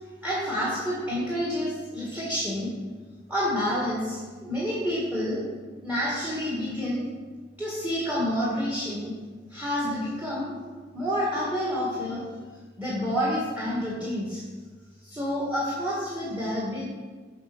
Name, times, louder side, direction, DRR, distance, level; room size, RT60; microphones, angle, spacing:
voice 1, 0.2-2.7 3.3-5.4 5.8-7.0 7.6-9.1 9.5-10.5 10.9-12.2 12.8-14.4 15.0-16.9, equal, 10° right, -6 dB, 1.7 m, -28 dB
7.4 x 5.2 x 6.0 m, 1.5 s
head